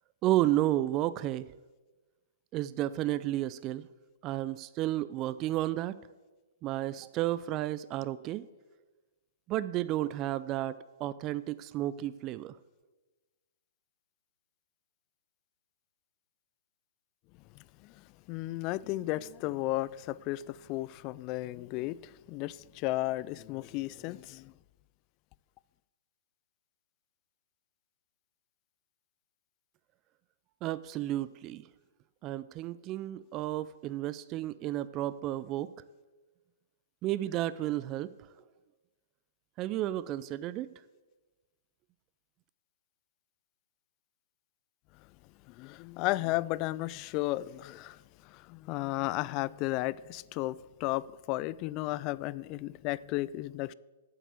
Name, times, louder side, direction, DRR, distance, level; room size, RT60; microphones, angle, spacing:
voice 1, 0.2-1.5 2.5-3.9 4.2-5.9 6.6-8.4 9.5-12.6 30.6-31.7 32.2-35.7 37.0-38.1 39.6-40.7, right 14 dB, 30° right, 0.4 m, -32 dB
voice 2, 17.8-24.5 45.5-53.7, left 18 dB, 35° left, 0.3 m, -34 dB
9.1 x 7.7 x 7.9 m
hypercardioid pair, 120°, 0 cm